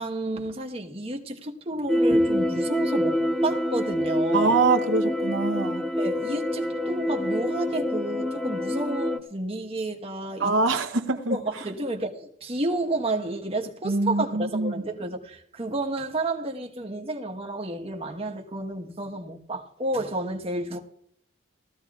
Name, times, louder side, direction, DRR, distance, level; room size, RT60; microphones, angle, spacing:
voice 1, 0.0-4.6 6.0-10.5 11.3-20.8, right 2 dB, 30° right, 1.2 m, -31 dB
sound 1, 1.9-9.2, left 1 dB, 5° left, 0.6 m, -26 dB
voice 2, 4.3-5.8 10.4-11.4 13.8-14.7, right 3 dB, 65° right, 0.8 m, -24 dB
19.0 x 14.5 x 2.4 m
head